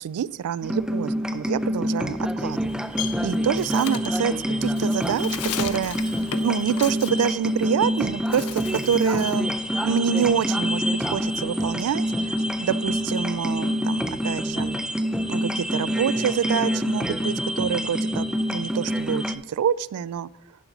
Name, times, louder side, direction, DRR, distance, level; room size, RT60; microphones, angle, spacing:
voice 1, 0.0-2.6 3.2-4.3 4.6-9.5 9.8-14.8 15.3-18.2 18.5-20.3, right 8 dB, 75° right, 18 dB, 0.3 m, -27 dB
sound 1, 0.6-19.4, equal, 5° right, 0.4 m, -26 dB
Bird, 2.4-7.9 8.2-9.5 9.9-11.6, left 10 dB, 75° left, 0.5 m, -36 dB
10.5 x 5.9 x 4.0 m, 0.81 s
head